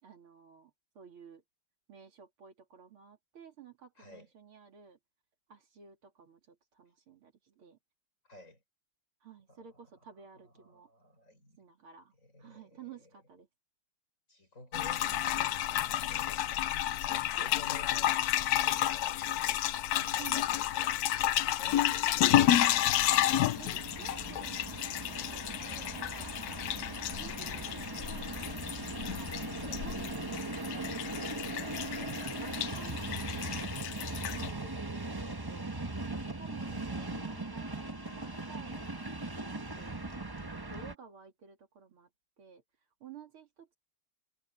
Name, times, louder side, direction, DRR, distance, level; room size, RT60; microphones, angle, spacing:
voice 1, 0.0-1.4 1.9-5.0 5.5-7.8 9.2-10.9 11.6-12.1 12.4-13.5 17.4-17.8 20.2-20.4 21.9-22.0 23.6-25.4 25.9-29.3 29.7-30.4 30.7-32.0 32.3-35.8 36.1-37.8 38.1-40.0 40.4-42.1 42.4-42.6 43.0-43.8, right 7 dB, 75° right, 3.3 m, -53 dB
voice 2, 4.0-4.3 8.2-8.6 9.5-9.9 10.3-11.6 12.2-13.1 14.3-15.6 16.0-16.7 17.1-19.6 19.9-20.8 21.5-22.6 25.6-26.0 29.5-29.8 31.9-32.3 36.6-39.2, left 1 dB, 35° left, 6.5 m, -54 dB
sound 1, 14.7-34.5, left 12 dB, 80° left, 0.8 m, -31 dB
Train, 22.0-40.9, right 2 dB, 15° right, 0.9 m, -40 dB
omnidirectional pair, 2.3 m